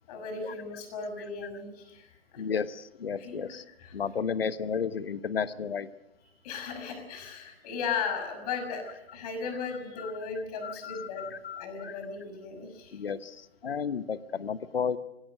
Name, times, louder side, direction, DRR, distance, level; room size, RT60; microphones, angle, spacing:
voice 1, 0.1-2.4 3.2-3.4 3.8-3.9 6.4-11.3 11.6-13.0, left 5 dB, 40° left, 6 dB, 6.1 m, -36 dB
voice 2, 2.4-3.6 3.9-5.9 10.0-10.1 10.6-11.9 12.9-15.0, left 6 dB, 70° left, 14 dB, 1.2 m, -33 dB
22.5 x 17.0 x 7.9 m, 0.99 s
figure-of-eight pair, 125°, 31 cm